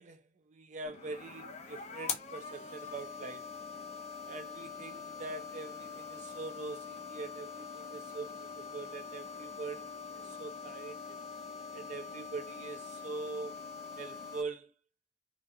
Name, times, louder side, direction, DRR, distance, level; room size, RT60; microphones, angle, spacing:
voice 1, 0.0-3.5 4.3-11.0 11.7-13.5 14.0-14.7, right 3 dB, 45° right, 0.4 m, -43 dB
sound 1, 0.8-14.4, left 5 dB, 40° left, 0.4 m, -44 dB
2.4 x 2.2 x 2.6 m
head